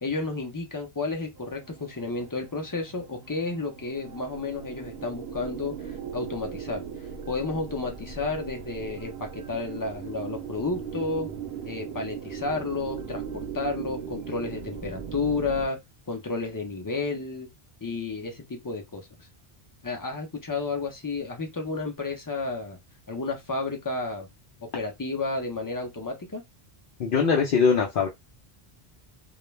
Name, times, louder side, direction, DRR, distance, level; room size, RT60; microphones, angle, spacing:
voice 1, 0.0-6.8 7.3-11.3 11.6-15.8 16.1-17.5 17.8-19.3 19.8-22.8 23.1-24.3 24.6-26.4, left 3 dB, 25° left, 0.5 m, -31 dB
sound 1, 1.4-15.7, right 7 dB, 80° right, 0.8 m, -39 dB
voice 2, 27.0-28.1, left 5 dB, 65° left, 0.7 m, -21 dB
2.3 x 2.1 x 3.1 m
omnidirectional pair, 1.1 m